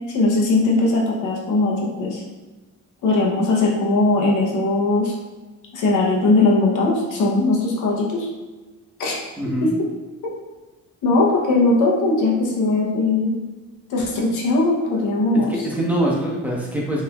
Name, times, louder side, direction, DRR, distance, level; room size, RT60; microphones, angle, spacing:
voice 1, 0.1-2.2 3.0-5.1 5.7-8.3 9.0-9.2 9.6-9.9 11.0-13.4 13.9-15.5, left 2 dB, 80° left, -2 dB, 1.0 m, -19 dB
voice 2, 9.4-9.7 15.3-17.0, right 1 dB, 5° right, -4 dB, 1.3 m, -24 dB
5.4 x 3.4 x 2.5 m, 1.2 s
cardioid pair, 90°, 30 cm